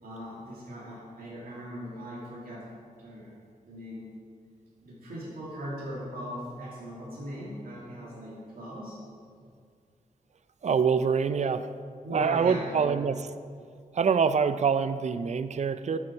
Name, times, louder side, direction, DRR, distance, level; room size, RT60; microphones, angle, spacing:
voice 1, 0.0-2.7 3.0-3.4 3.6-4.1 4.8-9.0 11.3-11.4 12.0-12.9, equal, 85° right, -6 dB, 2.5 m, -39 dB
voice 2, 10.6-11.6 12.1-13.2 13.9-16.0, right 6 dB, 50° right, 11 dB, 0.5 m, -25 dB
13.5 x 6.8 x 4.6 m, 2.1 s
wide cardioid pair, 105°, 15 cm